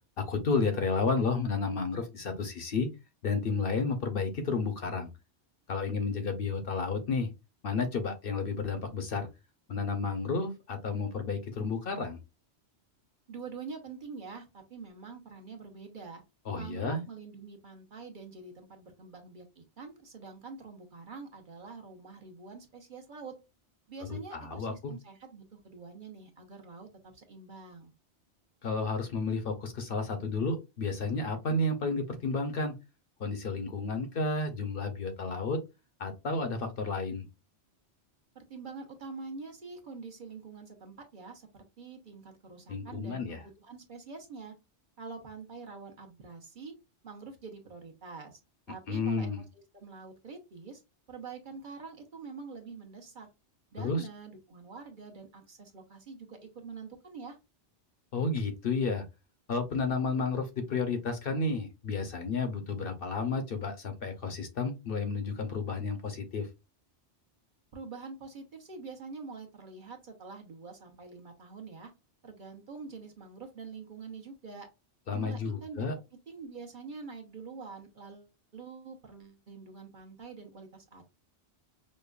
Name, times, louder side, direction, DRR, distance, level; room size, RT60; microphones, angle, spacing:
voice 1, 0.2-2.9 3.2-5.1 5.7-7.3 7.6-9.3 9.7-12.2 16.5-17.0 24.1-24.9 28.6-32.7 33.2-35.6 36.0-37.3 42.7-43.4 48.9-49.4 53.8-54.0 58.1-59.0 59.5-66.5 75.1-75.9, left 4 dB, 60° left, 7 dB, 0.8 m, -31 dB
voice 2, 13.3-16.2 16.5-23.3 23.9-27.9 38.3-44.5 45.0-46.7 47.0-48.4 48.7-50.8 51.1-53.3 53.7-57.4 67.7-71.9 72.2-74.7 75.1-75.9 76.3-81.0, right 4 dB, 50° right, 2 dB, 0.9 m, -45 dB
5.2 x 2.2 x 2.3 m, 0.25 s
omnidirectional pair, 1.2 m